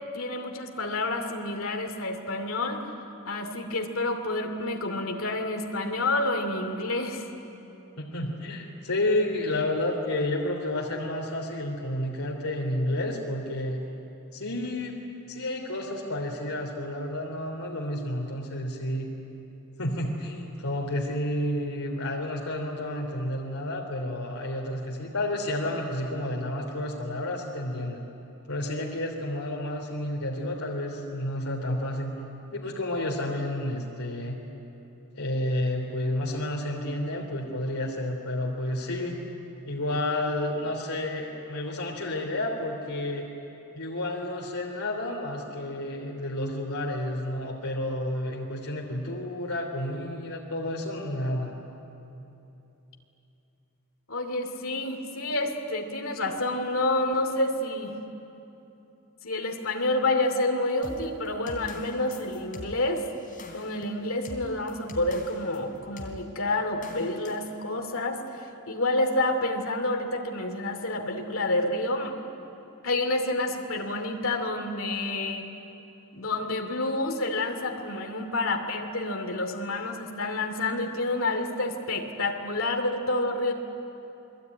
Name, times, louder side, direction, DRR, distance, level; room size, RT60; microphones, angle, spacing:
voice 1, 0.1-2.9 3.2-7.3 54.1-58.0 59.2-63.1 63.5-72.1 72.8-75.5 76.1-83.5, left 2 dB, 65° left, 4 dB, 2.7 m, -29 dB
voice 2, 8.0-13.9 14.3-19.1 19.8-28.1 28.5-32.2 32.5-34.4 35.1-39.2 39.7-43.3 43.7-51.5, left 1 dB, 85° left, -1 dB, 3.1 m, -30 dB
sound 1, 60.8-65.6 66.0-66.2 66.8-67.5, left 1 dB, 40° left, 3.4 m, -43 dB
28.0 x 21.0 x 9.5 m, 2.9 s
head